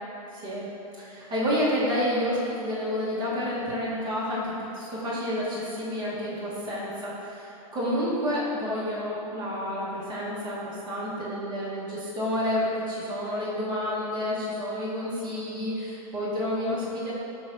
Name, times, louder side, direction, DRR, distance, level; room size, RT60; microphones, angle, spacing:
voice 1, 0.3-0.7 1.0-17.1, left 1 dB, 25° right, -8 dB, 1.1 m, -29 dB
5.9 x 3.2 x 2.6 m, 3.0 s
hypercardioid pair, 120°, 19 cm